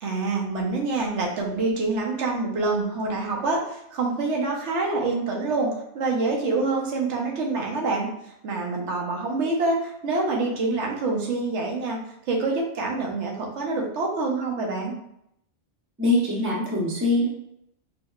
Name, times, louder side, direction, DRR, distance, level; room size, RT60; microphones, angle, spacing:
voice 1, 0.0-5.7 5.9-8.1 8.4-12.0 12.3-14.9, right 3 dB, 85° right, 0 dB, 0.9 m, -26 dB
voice 2, 16.0-17.3, left 2 dB, 15° right, -4 dB, 0.5 m, -23 dB
3.4 x 2.0 x 2.3 m, 0.76 s
omnidirectional pair, 1.2 m